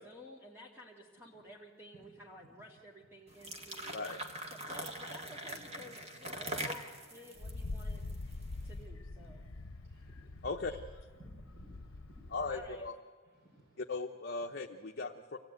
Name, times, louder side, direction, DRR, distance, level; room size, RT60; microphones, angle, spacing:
voice 1, 0.0-4.0 4.5-8.0 8.6-9.4 12.5-12.9, left 1 dB, 10° right, -2 dB, 1.9 m, -53 dB
sound 1, 3.3-8.5, right 1 dB, 30° right, 1.8 m, -42 dB
voice 2, 3.9-4.2 10.4-10.7 12.3-12.9 13.8-15.4, left 3 dB, 50° left, 2 dB, 0.9 m, -38 dB
voice 3, 5.6-5.9 7.2-7.4 8.2-8.9 9.2-10.8 11.2-12.4 13.2-13.8, right 2 dB, 55° right, 0 dB, 5.6 m, -60 dB
Wind, 7.4-12.9, left 2 dB, 85° left, 0.8 m, -44 dB
25.0 x 16.5 x 9.2 m, 1.5 s
head